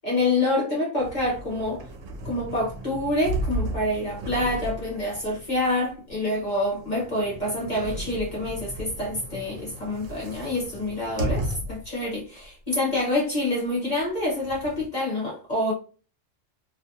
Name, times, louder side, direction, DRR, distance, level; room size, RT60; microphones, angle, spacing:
voice 1, 0.0-1.8 2.2-15.7, left 1 dB, 40° left, 0.9 m, -27 dB
sound 1, 1.0-12.0 12.4-12.5 14.0-14.9, right 1 dB, 80° right, 1.0 m, -35 dB
2.5 x 2.4 x 2.6 m
omnidirectional pair, 1.3 m